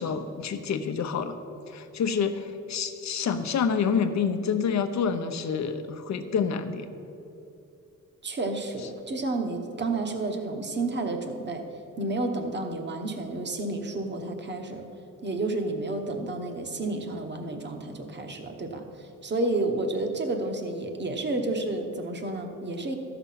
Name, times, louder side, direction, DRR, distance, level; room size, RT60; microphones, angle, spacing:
voice 1, 0.0-1.3 1.7-6.9, left 6 dB, 60° left, 9 dB, 0.8 m, -28 dB
voice 2, 8.2-11.6 12.0-14.9 15.2-23.0, right 2 dB, 35° right, 5 dB, 1.1 m, -31 dB
13.5 x 5.9 x 5.8 m, 2.7 s
cardioid pair, 110°, 32 cm